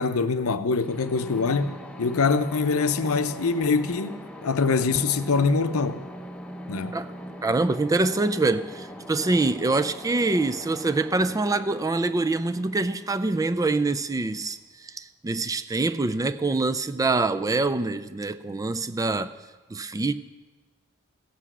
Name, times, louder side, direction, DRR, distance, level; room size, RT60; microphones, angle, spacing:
voice 1, 0.0-6.0 6.7-7.0, left 4 dB, 70° left, 0.7 m, -24 dB
sound 1, 0.8-14.5, equal, 5° left, 0.8 m, -42 dB
voice 2, 7.4-19.3 19.7-20.1, right 3 dB, 15° right, 0.3 m, -25 dB
16.0 x 8.0 x 6.1 m
head